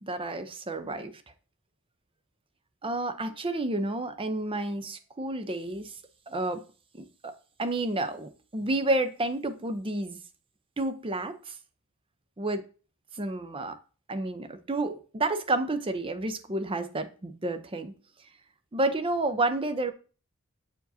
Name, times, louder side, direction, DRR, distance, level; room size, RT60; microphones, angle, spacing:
voice 1, 0.0-1.1 2.8-5.9 6.3-6.6 6.9-7.3 7.6-10.2 10.8-11.5 12.4-12.6 13.2-13.8 14.1-17.9 18.7-19.9, right 2 dB, 25° right, 0.6 m, -30 dB
7.6 x 4.8 x 2.7 m
head